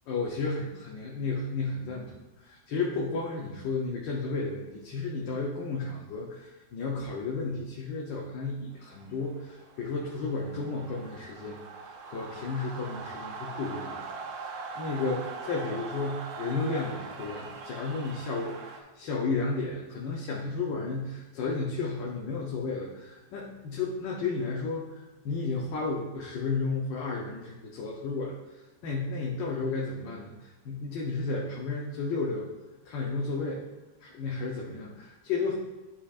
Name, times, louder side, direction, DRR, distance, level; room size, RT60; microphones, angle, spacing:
voice 1, 0.1-32.5 32.8-33.6 34.0-35.6, left 3 dB, 90° left, -2 dB, 1.5 m, -33 dB
sound 1, 8.9-18.8, right 4 dB, 65° right, 1.2 m, -41 dB
11.0 x 4.4 x 2.4 m, 1.1 s
omnidirectional pair, 1.9 m